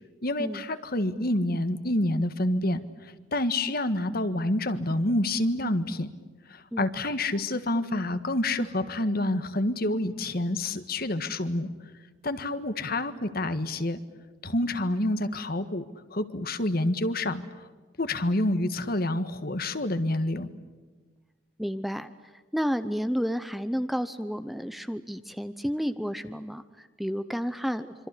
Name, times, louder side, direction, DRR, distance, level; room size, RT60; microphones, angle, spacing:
voice 1, 0.2-6.1 6.5-11.7 12.2-14.0 14.4-15.8 16.1-17.4 18.0-20.5, left 1 dB, 50° left, 11 dB, 1.6 m, -28 dB
voice 2, 21.6-27.9, equal, ahead, 11 dB, 0.8 m, -31 dB
26.5 x 26.0 x 8.4 m, 1.4 s
head